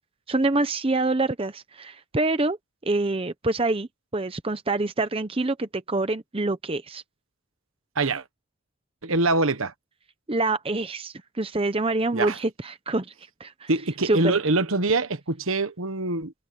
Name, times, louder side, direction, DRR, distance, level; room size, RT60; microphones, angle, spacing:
voice 1, 0.3-2.6 2.8-7.0 10.3-13.1 13.4-13.7 14.0-14.3, right 2 dB, 25° right, 0.7 m, -26 dB
voice 2, 9.0-9.7 12.1-12.4 13.7-16.3, right 2 dB, 65° right, 1.3 m, -24 dB
head